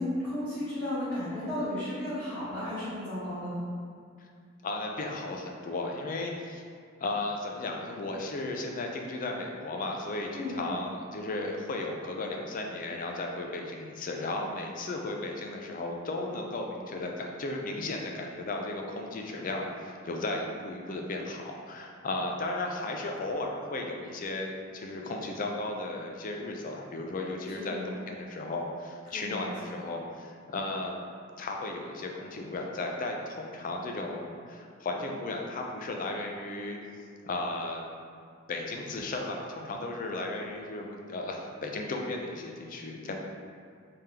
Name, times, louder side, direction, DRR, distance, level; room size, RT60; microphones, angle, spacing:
voice 1, 0.0-3.6 10.3-10.6 27.5-27.9 29.1-29.7, left 1 dB, 10° left, -16 dB, 1.1 m, -34 dB
voice 2, 4.6-6.6 7.0-31.0 31.4-36.8 37.2-37.9 38.5-43.1, left 2 dB, 40° left, 1 dB, 0.4 m, -35 dB
3.6 x 3.4 x 2.8 m, 2.2 s
head